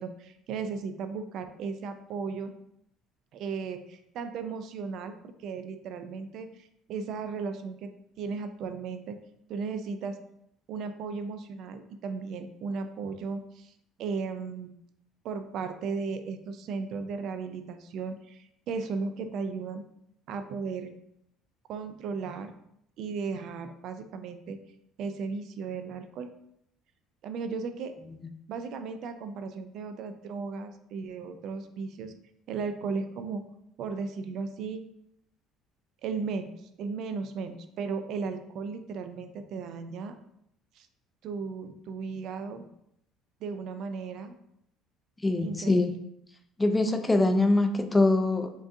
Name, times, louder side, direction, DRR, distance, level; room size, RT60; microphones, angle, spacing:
voice 1, 0.0-2.5 3.3-5.1 5.4-6.5 6.9-7.9 8.2-9.2 9.5-10.2 10.7-13.7 14.0-14.7 15.2-19.9 20.3-20.9 21.7-22.5 23.0-24.6 25.0-26.3 27.2-27.9 28.5-32.1 32.5-33.4 33.8-34.8 36.0-36.5 36.8-40.1 40.8-40.9 41.2-42.6 43.4-44.4 45.4-46.0, right 5 dB, 65° right, 9 dB, 0.4 m, -35 dB
voice 2, 45.2-45.9 46.6-48.5, left 2 dB, 15° left, 7 dB, 0.4 m, -23 dB
3.7 x 3.4 x 2.6 m, 0.75 s
supercardioid pair, 95°, 0 cm